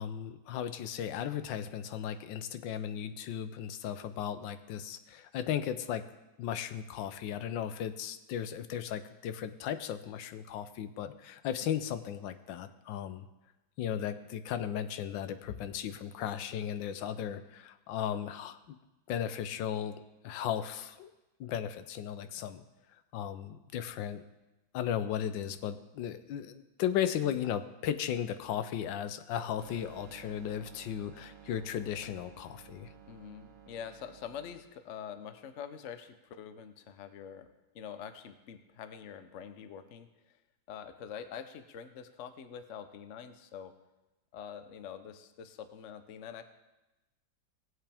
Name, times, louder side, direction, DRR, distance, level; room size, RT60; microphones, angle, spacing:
voice 1, 0.0-6.0 6.4-13.3 13.8-18.8 19.1-19.9 20.2-21.1 21.4-22.6 23.1-24.2 24.7-32.9, left 9 dB, 75° left, 11 dB, 1.4 m, -36 dB
sound 1, 29.6-34.6, right 8 dB, 90° right, 0.4 m, -54 dB
voice 2, 33.1-37.5 37.7-40.1 40.7-43.7 44.3-46.4, left 8 dB, 55° left, 9 dB, 0.8 m, -45 dB
19.5 x 7.9 x 3.5 m, 1.0 s
omnidirectional pair, 2.1 m